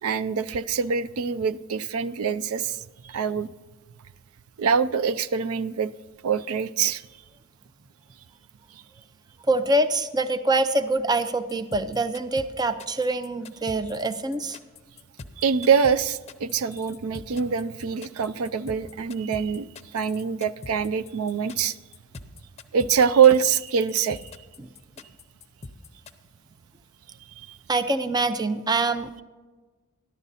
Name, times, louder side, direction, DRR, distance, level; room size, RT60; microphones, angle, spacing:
voice 1, 0.0-3.5 4.6-5.9 6.2-7.0 15.4-21.8 22.7-24.2 27.4-27.6, right 7 dB, 80° right, 14 dB, 0.4 m, -24 dB
voice 2, 9.5-14.6 24.6-24.7 27.7-29.2, right 2 dB, 20° right, 11 dB, 0.5 m, -25 dB
sound 1, 11.5-26.1, left 3 dB, 30° left, 0.7 m, -43 dB
13.5 x 11.5 x 4.1 m, 1.3 s
head